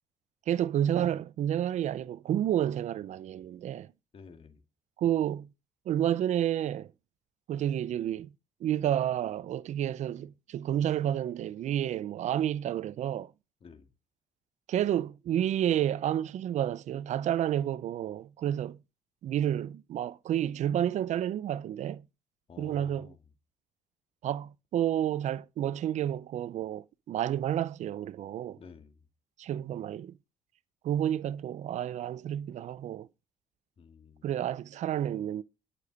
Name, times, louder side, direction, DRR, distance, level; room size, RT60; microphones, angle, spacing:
voice 1, 0.5-3.9 5.0-5.5 5.9-6.9 7.5-8.3 8.6-13.3 14.7-18.8 19.2-22.0 22.6-23.1 24.2-28.6 29.4-30.2 30.8-33.1 34.2-35.4, right 11 dB, 65° right, 0.6 m, -30 dB
voice 2, 4.1-4.6 13.6-13.9 22.5-23.2 28.6-29.0 33.8-34.3, left 5 dB, 45° left, 1.9 m, -51 dB
11.5 x 6.9 x 5.2 m
cardioid pair, 85°, 13 cm